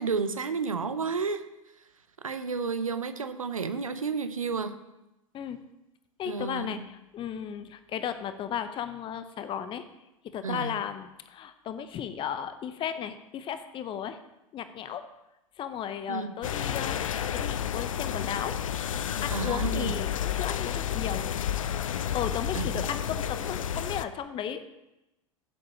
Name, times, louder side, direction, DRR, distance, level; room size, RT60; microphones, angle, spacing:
voice 1, 0.0-1.4 2.2-4.7 6.3-6.7 10.4-10.7 16.1-16.3 19.3-19.9 22.6-22.8, right 5 dB, 85° right, 10 dB, 0.8 m, -31 dB
voice 2, 6.2-9.8 10.3-14.2 14.5-15.0 15.6-18.6 19.2-21.3 22.1-24.7, left 9 dB, 30° left, 10 dB, 0.8 m, -35 dB
sound 1, 16.4-24.1, left 9 dB, 75° left, 0.5 m, -31 dB
16.0 x 7.5 x 3.0 m, 0.95 s
figure-of-eight pair, 85°, 17 cm